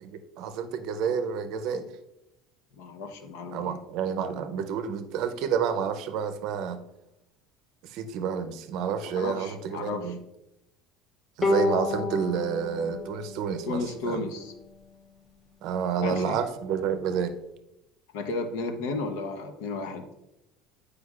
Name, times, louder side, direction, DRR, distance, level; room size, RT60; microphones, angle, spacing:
voice 1, 0.0-1.9 3.5-6.8 7.8-10.2 11.4-14.3 15.6-17.3, right 7 dB, 50° right, 9 dB, 0.5 m, -29 dB
voice 2, 2.8-3.7 9.0-10.1 13.7-14.5 16.0-16.4 18.1-20.1, left 3 dB, 85° left, 6 dB, 0.8 m, -33 dB
Bowed string instrument, 11.4-14.7, left 2 dB, 15° left, 0.6 m, -30 dB
8.1 x 4.9 x 2.4 m, 0.89 s
cardioid pair, 170°, 0 cm